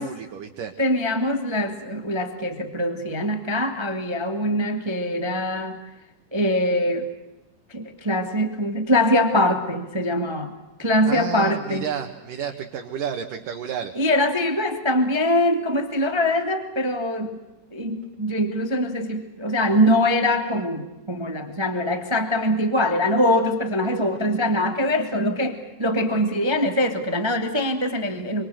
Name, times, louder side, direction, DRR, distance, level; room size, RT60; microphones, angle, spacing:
voice 1, 0.0-0.7 11.1-13.9, right 8 dB, 60° right, 3 dB, 2.9 m, -31 dB
voice 2, 0.8-5.8 6.3-7.1 7.7-10.5 10.8-11.8 13.9-17.4 17.7-28.5, left 1 dB, 10° right, 7 dB, 1.4 m, -23 dB
27.0 x 26.0 x 8.1 m, 1.0 s
omnidirectional pair, 4.6 m